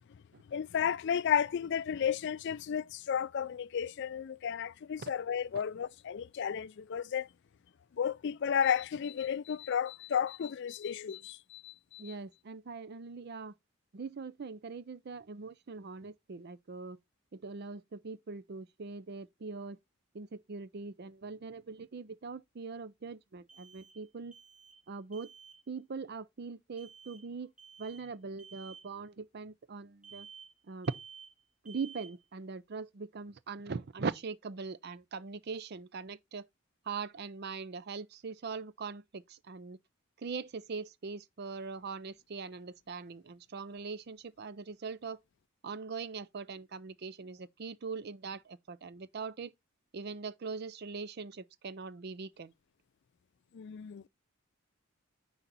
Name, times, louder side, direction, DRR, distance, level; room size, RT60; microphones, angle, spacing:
voice 1, 0.5-7.3 8.0-12.1 53.5-54.1, left 8 dB, 55° left, 0.4 m, -33 dB
voice 2, 12.0-13.6 13.9-17.0 17.3-19.8 20.1-24.3 24.9-25.3 25.7-27.5 27.8-30.3 30.7-30.9 31.6-36.5 36.8-39.8 40.2-45.2 45.6-49.5 49.9-52.5, right 4 dB, 50° right, 0.5 m, -41 dB
sound 1, 20.2-20.3 23.5-24.1 24.3-24.9 25.1-25.6 26.8-27.3 27.6-28.1 28.4-28.9 30.0-30.6 30.8-31.4 31.6-32.2, right 7 dB, 5° right, 1.1 m, -53 dB
10.0 x 4.0 x 4.1 m
head